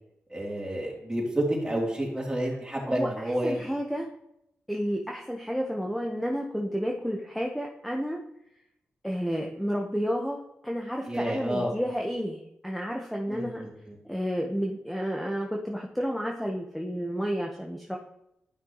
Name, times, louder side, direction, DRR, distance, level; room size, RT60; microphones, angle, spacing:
voice 1, 0.3-3.6 11.1-11.7 13.3-13.7, right 1 dB, 15° right, -3 dB, 3.3 m, -29 dB
voice 2, 2.9-4.1 4.7-8.2 9.0-13.6 14.1-18.0, equal, ahead, 0 dB, 1.2 m, -31 dB
11.5 x 5.9 x 3.1 m, 0.79 s
cardioid pair, 50°, 5 cm